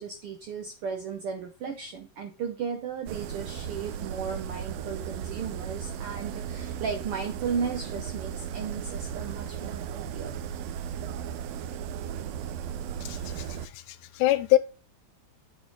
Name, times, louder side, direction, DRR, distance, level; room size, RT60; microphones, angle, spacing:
voice 1, 0.0-10.3, right 6 dB, 70° right, 4 dB, 1.3 m, -35 dB
sound 1, 3.1-13.7, right 8 dB, 90° right, 1.5 m, -36 dB
voice 2, 13.0-14.6, left 15 dB, 80° left, 14 dB, 2.0 m, -25 dB
8.5 x 4.4 x 4.8 m, 0.32 s
omnidirectional pair, 3.6 m